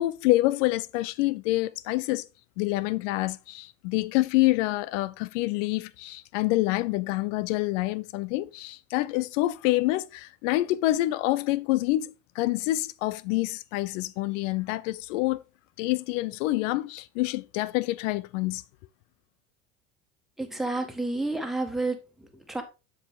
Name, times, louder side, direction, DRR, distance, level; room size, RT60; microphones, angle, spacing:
voice 1, 0.0-2.2 2.6-15.4 15.8-18.6, left 18 dB, 70° left, 0.6 m, -27 dB
voice 2, 20.4-22.6, right 2 dB, ahead, 1.6 m, -30 dB
7.5 x 4.8 x 3.6 m
hypercardioid pair, 80°, 39 cm